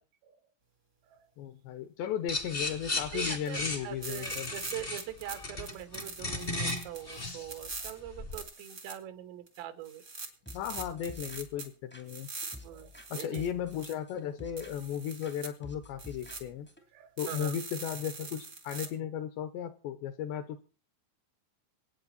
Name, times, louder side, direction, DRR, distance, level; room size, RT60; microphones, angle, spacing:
voice 1, 1.4-4.5 10.5-12.3 13.1-16.7 17.2-20.6, left 9 dB, 75° left, 10 dB, 2.7 m, -36 dB
sound 1, 2.3-8.4, left 2 dB, 35° left, 0.9 m, -35 dB
voice 2, 3.1-10.0 12.6-13.4 16.9-17.6 19.6-19.7, right 12 dB, 80° right, 9 dB, 3.8 m, -43 dB
sound 2, 3.4-3.5 4.0-5.3 5.6-7.9 8.3-8.9 9.5-9.6 9.8-11.7 12.1-13.9 14.6-15.5 16.0-16.4 17.2-18.9, right 4 dB, 55° right, 0.9 m, -43 dB
sound 3, 10.4-13.1 13.3-14.9 15.2-16.8, left 1 dB, 15° left, 0.4 m, -50 dB
25.5 x 9.0 x 4.1 m, 0.36 s
omnidirectional pair, 5.8 m